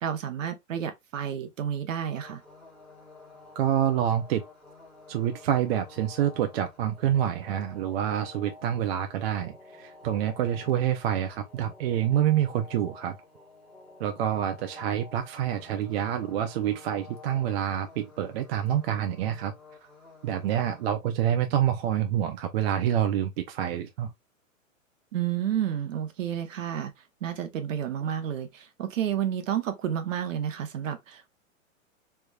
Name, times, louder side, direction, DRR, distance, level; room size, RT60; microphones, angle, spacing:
voice 1, 0.0-2.4 25.1-26.9 27.2-31.4, right 9 dB, 65° right, 1.0 m, -30 dB
sound 1, 2.1-20.9, left 4 dB, ahead, 1.2 m, -51 dB
voice 2, 3.6-4.4 5.1-13.2 14.0-19.5 20.2-24.1, right 10 dB, 50° right, 0.6 m, -27 dB
3.4 x 3.1 x 2.3 m
hypercardioid pair, 120°, 41 cm